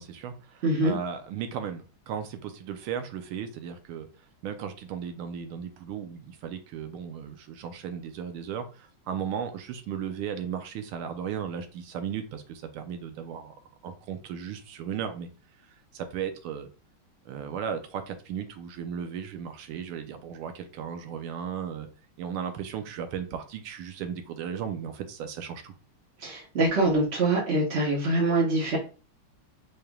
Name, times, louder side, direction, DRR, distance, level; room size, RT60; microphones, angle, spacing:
voice 1, 0.0-4.1 4.4-13.5 13.8-15.3 15.9-16.7 17.3-21.9 22.2-25.7, right 8 dB, 85° right, 7 dB, 1.5 m, -36 dB
voice 2, 0.6-0.9 26.2-28.8, right 2 dB, 50° right, -4 dB, 0.8 m, -24 dB
4.6 x 3.3 x 2.3 m, 0.34 s
omnidirectional pair, 2.3 m